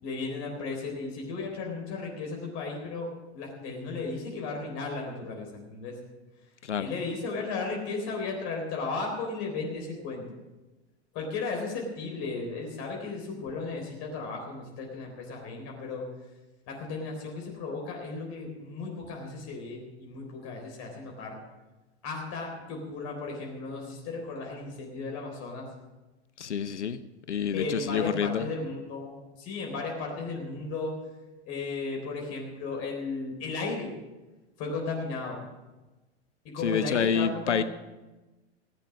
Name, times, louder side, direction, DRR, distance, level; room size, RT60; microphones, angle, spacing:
voice 1, 0.0-6.0 6.8-10.3 11.1-16.1 16.7-21.4 22.0-25.7 27.5-30.9 31.5-33.9 34.6-35.4 36.4-37.6, left 3 dB, 45° left, 0 dB, 3.8 m, -35 dB
voice 2, 26.4-27.0 27.3-28.4 36.6-37.6, left 7 dB, 90° left, 13 dB, 0.7 m, -28 dB
16.5 x 9.3 x 6.4 m, 1.1 s
hypercardioid pair, 95°, 34 cm